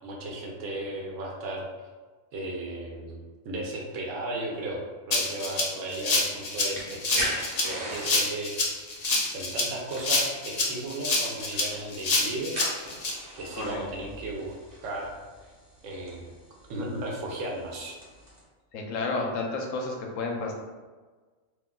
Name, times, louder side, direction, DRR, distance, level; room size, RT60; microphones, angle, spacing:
voice 1, 0.0-1.6 2.3-7.3 7.6-8.5 9.3-12.6 13.3-14.5 14.8-15.1 15.8-16.3 16.7-18.0, right 1 dB, 75° right, -1 dB, 1.0 m, -35 dB
Rattle (instrument), 5.1-13.1, left 2 dB, 55° left, 0.4 m, -27 dB
sound 1, 5.9-18.4, right 1 dB, 40° right, 0.8 m, -41 dB
voice 2, 13.6-14.1 18.7-20.5, left 3 dB, 80° left, 1 dB, 1.0 m, -31 dB
2.7 x 2.2 x 3.6 m, 1.4 s
omnidirectional pair, 1.3 m